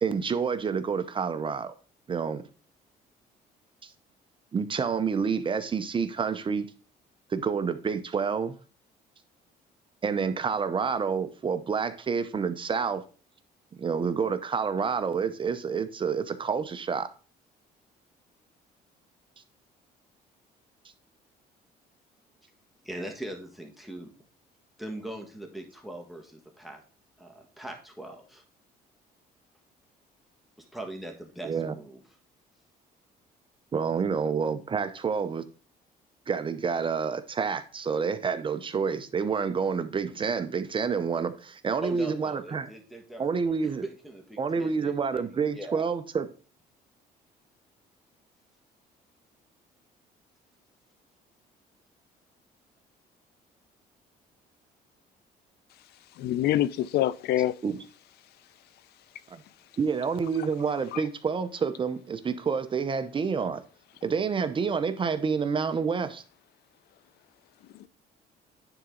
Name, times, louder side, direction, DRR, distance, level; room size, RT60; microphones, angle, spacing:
voice 1, 0.0-1.7 2.1-2.4 3.8-3.9 4.5-6.7 7.3-8.6 10.0-13.0 13.8-17.1 31.4-31.7 33.7-35.5 36.3-42.7 43.2-43.8 44.4-46.3 57.6-57.8 59.3-59.4 59.8-63.6 64.0-66.2, right 5 dB, 30° right, 0.7 m, -28 dB
voice 2, 22.8-24.1 24.8-26.8 27.2-28.4 30.6-32.0 41.8-45.8, right 1 dB, ahead, 1.5 m, -41 dB
voice 3, 56.2-57.5 60.9-61.0, left 13 dB, 70° left, 0.5 m, -25 dB
9.9 x 4.0 x 3.7 m
cardioid pair, 110°, 17 cm